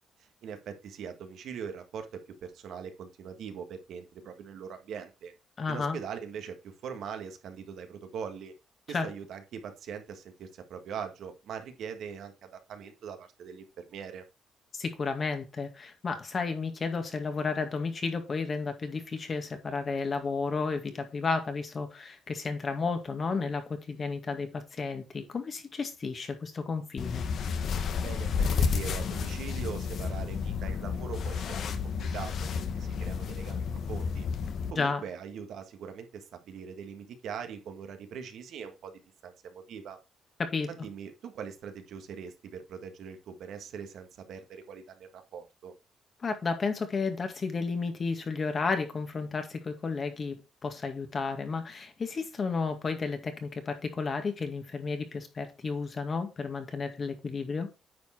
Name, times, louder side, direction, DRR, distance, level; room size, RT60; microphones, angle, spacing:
voice 1, 0.2-5.3 5.7-8.5 8.9-14.2 28.0-34.3 34.7-40.0 40.7-45.7, right 7 dB, 75° right, 1.6 m, -42 dB
voice 2, 5.6-6.0 8.9-9.1 14.7-27.3 34.8-35.0 40.4-40.7 46.2-57.7, left 4 dB, 40° left, 1.9 m, -32 dB
sound 1, 27.0-34.7, left 6 dB, 65° left, 1.1 m, -31 dB
9.4 x 4.6 x 4.4 m
cardioid pair, 100°, 0 cm